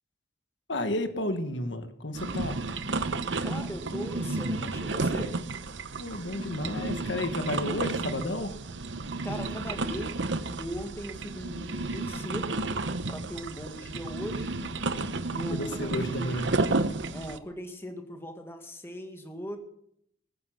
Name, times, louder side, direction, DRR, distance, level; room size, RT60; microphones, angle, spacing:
voice 1, 0.7-2.6 6.0-8.5 15.5-16.5, left 1 dB, 85° left, 8 dB, 1.5 m, -32 dB
sound 1, 2.1-17.4, right 3 dB, 85° right, 0.9 m, -32 dB
voice 2, 3.4-5.4 9.2-10.2 10.6-12.6 13.1-14.5 15.3-16.3 17.1-19.6, equal, 15° left, 4 dB, 1.8 m, -39 dB
20.5 x 9.7 x 6.0 m, 0.72 s
head